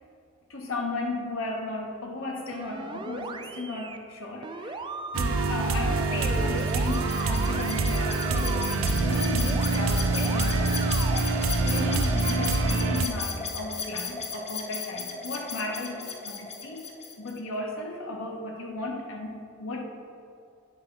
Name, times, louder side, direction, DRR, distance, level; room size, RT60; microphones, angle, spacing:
voice 1, 0.5-11.1 11.4-16.9 17.2-19.8, left 2 dB, 75° left, 1 dB, 0.9 m, -35 dB
sound 1, 2.5-4.0 4.4-8.7 9.4-9.9 10.1-11.2, right 4 dB, 25° right, 0.3 m, -37 dB
sound 2, 5.1-13.1, right 3 dB, 75° right, 0.6 m, -25 dB
sound 3, 6.3-17.4, left 5 dB, 30° left, 0.8 m, -35 dB
9.6 x 3.9 x 5.8 m, 2.6 s
head